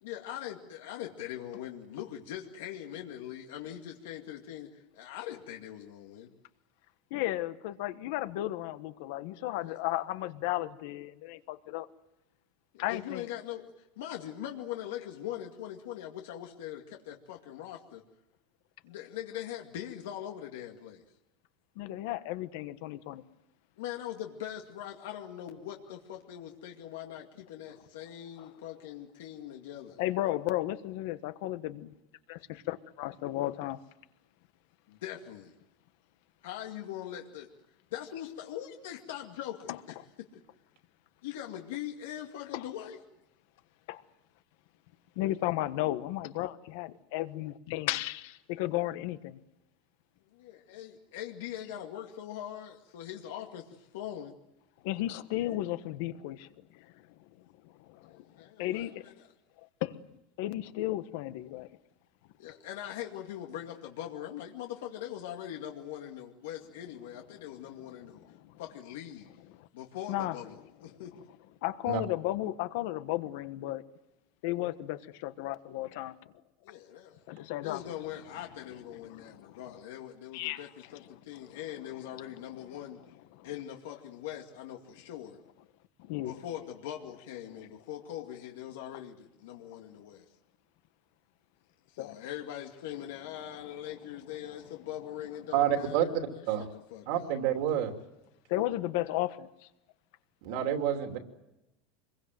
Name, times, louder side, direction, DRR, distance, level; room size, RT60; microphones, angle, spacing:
voice 1, 0.0-6.3 9.6-9.8 12.7-18.0 18.8-21.0 23.8-30.0 34.9-35.5 36.4-37.5 37.9-40.4 41.2-43.0 50.3-54.3 58.1-59.3 62.4-68.2 68.6-69.3 69.7-71.1 76.6-77.2 77.6-83.0 83.4-85.4 86.2-90.3 91.9-97.3, left 11 dB, 80° left, 2 dB, 2.3 m, -42 dB
voice 2, 7.1-11.9 12.8-13.2 21.8-23.2 28.4-28.5 30.0-31.9 32.3-33.8 39.7-39.8 42.5-42.6 43.9-44.0 45.2-49.4 54.8-56.9 57.6-58.3 58.6-59.0 59.8-60.0 60.4-61.7 68.2-68.5 69.6-69.7 70.1-70.4 71.6-73.8 74.4-76.1 77.3-77.8 79.1-79.6 80.3-80.7 81.5-81.6 83.3-83.5 86.1-86.3 87.6-87.7 92.0-92.2 98.5-99.5, left 15 dB, 55° left, 12 dB, 1.3 m, -34 dB
voice 3, 95.5-96.1 96.5-96.7 97.1-97.9 100.4-101.2, right 10 dB, 50° right, 5 dB, 2.9 m, -28 dB
26.0 x 22.5 x 7.7 m, 0.94 s
supercardioid pair, 180°, 0 cm